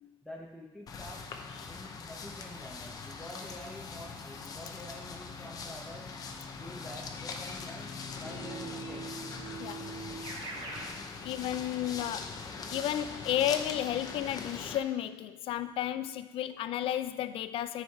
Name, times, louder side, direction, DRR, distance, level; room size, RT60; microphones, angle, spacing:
voice 1, 0.2-1.2 1.7-6.1 6.6-9.0, left 1 dB, ahead, -4 dB, 1.0 m, -47 dB
sound 1, 0.9-14.8, left 4 dB, 40° left, 0.7 m, -42 dB
Keyboard (musical), 8.2-11.0, right 3 dB, 85° right, 2.2 m, -42 dB
voice 2, 11.2-12.4 12.7-17.8, left 11 dB, 75° left, 13 dB, 0.4 m, -33 dB
9.9 x 4.8 x 4.7 m, 1.1 s
cardioid pair, 155°, 9 cm